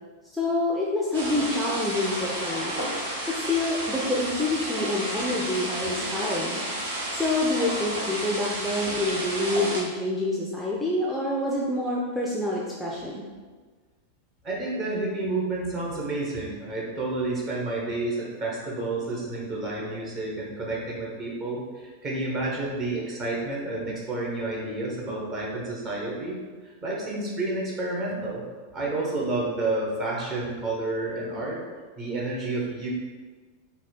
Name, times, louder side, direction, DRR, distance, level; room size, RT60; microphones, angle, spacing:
voice 1, 0.3-2.7 3.3-6.6 7.1-13.2, left 2 dB, 5° left, -4 dB, 0.5 m, -27 dB
sound 1, 1.1-9.8, right 1 dB, 60° right, 1.0 m, -31 dB
voice 2, 14.4-28.4 28.7-31.6 32.0-32.9, right 2 dB, 30° right, -4 dB, 1.2 m, -30 dB
4.0 x 2.3 x 4.3 m, 1.4 s
figure-of-eight pair, 90°, 0 cm